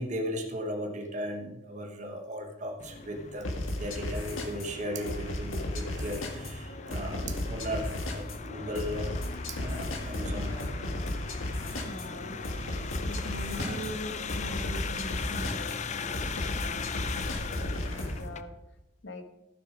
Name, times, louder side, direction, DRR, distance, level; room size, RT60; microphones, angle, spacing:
voice 1, 0.0-3.5 3.8-10.6 13.6-13.7, equal, 40° right, 3 dB, 1.1 m, -36 dB
sound 1, 2.8-18.4, left 5 dB, 35° left, 0.5 m, -39 dB
sound 2, 3.4-18.2, left 1 dB, 90° left, 1.9 m, -35 dB
voice 2, 11.7-12.4 13.1-16.9 17.2-18.6 19.0-19.2, equal, 65° left, 7 dB, 1.3 m, -42 dB
15.0 x 6.6 x 5.0 m, 0.99 s
head